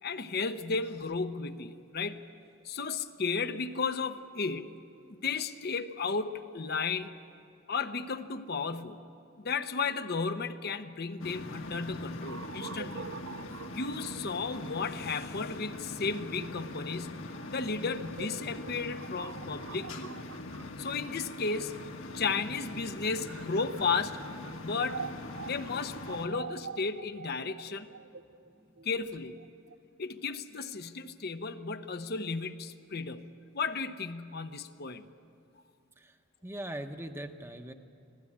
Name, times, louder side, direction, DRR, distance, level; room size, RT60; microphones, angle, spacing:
voice 1, 0.0-2.3 2.6-4.7 5.1-7.1 7.7-9.0 9.4-13.0 13.7-17.2 17.5-20.1 20.8-21.7 22.1-24.2 24.5-25.0 25.4-27.9 28.8-29.4 30.0-35.0, left 4 dB, 50° left, 9 dB, 0.8 m, -34 dB
sound 1, 11.2-26.3, left 2 dB, 70° left, 1.5 m, -42 dB
sound 2, 12.2-22.1 22.8-29.8, right 6 dB, 65° right, 0.5 m, -46 dB
voice 2, 28.4-28.8 36.0-37.7, right 1 dB, 10° right, 6 dB, 0.9 m, -42 dB
25.0 x 16.5 x 8.7 m, 2.5 s
head